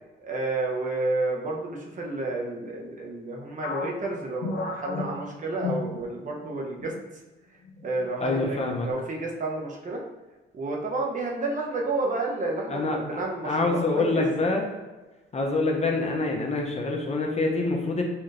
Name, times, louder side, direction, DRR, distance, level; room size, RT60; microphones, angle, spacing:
voice 1, 0.2-6.9 7.8-10.0 10.5-14.3, right 2 dB, 40° right, -1 dB, 0.9 m, -30 dB
sound 1, 3.6-6.5 6.8-7.0 7.6-8.1, left 4 dB, 70° left, 0.6 m, -33 dB
voice 2, 8.2-8.9 12.7-14.7 15.3-18.0, left 3 dB, 35° left, 1 dB, 0.7 m, -26 dB
4.3 x 3.0 x 2.6 m, 1.2 s
cardioid pair, 90°, 20 cm